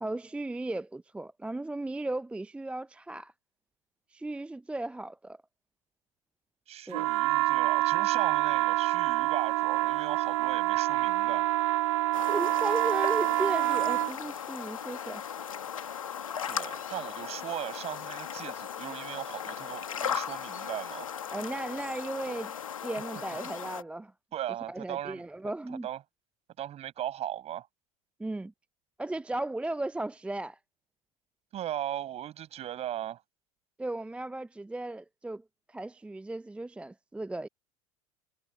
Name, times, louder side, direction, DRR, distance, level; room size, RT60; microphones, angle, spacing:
voice 1, 0.0-3.3 4.1-5.4 6.9-7.1 12.3-15.2 21.3-22.6 22.8-24.1 24.7-25.9 28.2-28.5 29.0-30.6 33.8-37.5, right 2 dB, 5° right, 0.7 m, -35 dB
voice 2, 6.7-11.5 16.4-21.1 23.3-23.5 24.3-25.3 25.8-26.0 26.6-27.7 31.5-33.2, right 11 dB, 35° right, 7.5 m, -38 dB
sound 1, 6.9-14.1, right 17 dB, 60° right, 0.4 m, -27 dB
sound 2, 12.1-23.8, left 8 dB, 75° left, 2.5 m, -37 dB
figure-of-eight pair, 75°, 18 cm